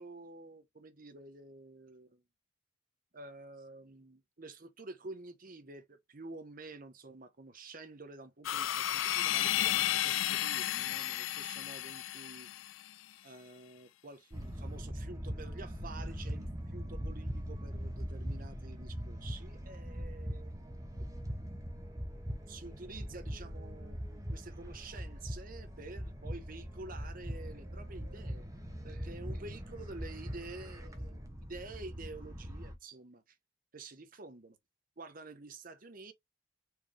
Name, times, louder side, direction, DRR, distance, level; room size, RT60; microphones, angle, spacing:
voice 1, 0.0-2.2 3.1-12.5 13.2-20.5 21.0-21.1 22.5-28.5 28.8-33.4 33.7-34.6 35.0-36.1, right 3 dB, 45° right, 0.9 m, -49 dB
sound 1, 8.4-12.9, left 13 dB, 80° left, 0.4 m, -33 dB
sound 2, 14.3-32.7, equal, 15° right, 1.0 m, -41 dB
4.6 x 3.6 x 3.2 m
head